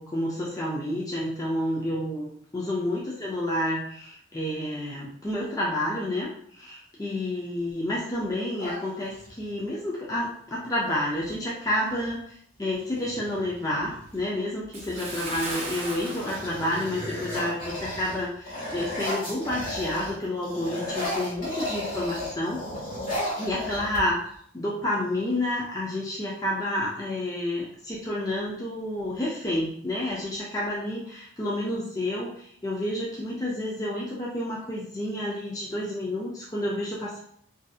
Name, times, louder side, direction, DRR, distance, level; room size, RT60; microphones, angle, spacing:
voice 1, 0.0-22.6 23.4-24.2 24.5-37.2, left 1 dB, 20° left, -5 dB, 0.4 m, -30 dB
sound 1, 8.6-9.5 11.2-11.3 11.6-12.1 12.7-14.2 14.8-15.2 15.6-20.2 20.4-24.4, left 1 dB, 45° left, 1.1 m, -35 dB
Bathtub (filling or washing) / Splash splatter, 14.7-17.6 17.9-18.1 18.7-18.8, right 2 dB, 30° right, 0.6 m, -37 dB
2.6 x 2.5 x 2.3 m, 0.65 s
head